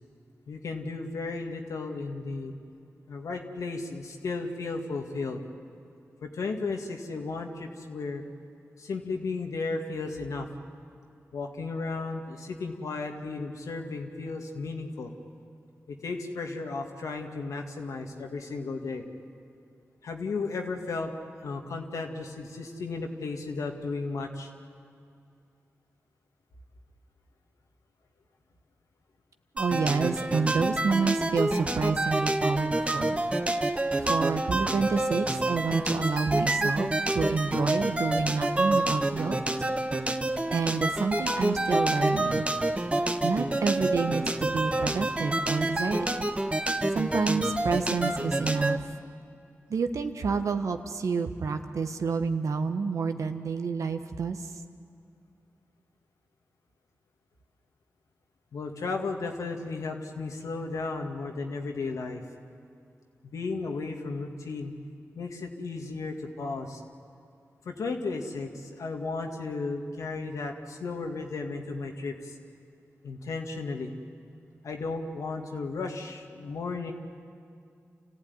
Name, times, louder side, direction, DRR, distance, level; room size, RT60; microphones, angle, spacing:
voice 1, 0.5-2.5 3.1-5.4 6.2-8.2 8.8-10.5 11.3-15.1 15.9-19.1 20.0-21.1 21.4-24.5 58.5-62.2 63.2-64.7 65.2-66.8 67.7-72.4 73.0-73.9 74.6-76.9, left 3 dB, 90° left, 3 dB, 2.1 m, -34 dB
voice 2, 29.5-33.2 34.0-39.4 40.5-42.5 43.2-46.2 46.9-48.8 49.7-54.5, right 5 dB, 80° right, 7 dB, 1.3 m, -29 dB
sound 1, 29.6-48.8, right 1 dB, 25° right, 1.4 m, -28 dB
28.5 x 15.5 x 9.7 m, 2.5 s
cardioid pair, 45°, 5 cm